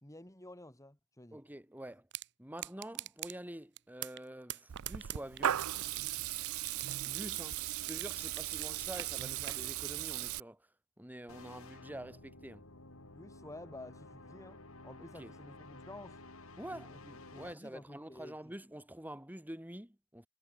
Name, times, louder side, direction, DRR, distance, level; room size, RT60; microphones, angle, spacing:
voice 1, 0.0-1.4 13.0-16.2 16.7-17.0 17.3-18.5, left 1 dB, 15° left, 2.6 m, -51 dB
voice 2, 1.3-2.1 2.4-5.6 7.0-10.7 11.0-12.6 15.1-15.3 16.6-20.3, right 1 dB, 10° right, 2.7 m, -47 dB
sound 1, 2.1-2.3 2.6-3.3 3.8-4.2 4.5-6.1 6.4-8.1 8.4-9.6, right 12 dB, 55° right, 1.6 m, -42 dB
Water tap faucet / Liquid, 4.7-10.4, right 12 dB, 90° right, 0.5 m, -37 dB
sound 2, 11.3-17.5, left 2 dB, 80° left, 5.3 m, -53 dB
head